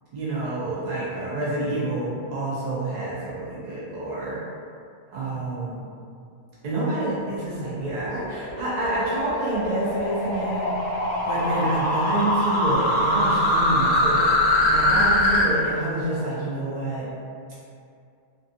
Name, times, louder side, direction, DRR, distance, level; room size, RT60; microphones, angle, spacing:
voice 1, 0.1-4.4 5.1-5.8 6.6-10.7 11.2-17.1, right 2 dB, 55° right, -8 dB, 0.4 m, -28 dB
sound 1, 7.4-15.4, left 1 dB, 60° left, 0.7 m, -23 dB
2.6 x 2.3 x 2.4 m, 2.4 s
omnidirectional pair, 1.3 m